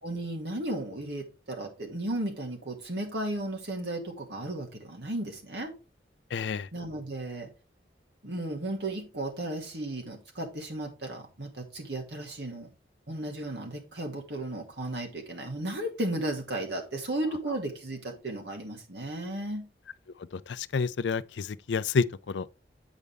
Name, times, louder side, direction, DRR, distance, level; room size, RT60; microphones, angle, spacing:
voice 1, 0.0-5.7 6.7-7.5 8.2-12.7 13.1-19.7, right 1 dB, 70° right, 2.1 m, -34 dB
voice 2, 6.3-6.7 20.3-22.5, left 5 dB, 75° left, 0.4 m, -29 dB
8.3 x 5.2 x 3.4 m
head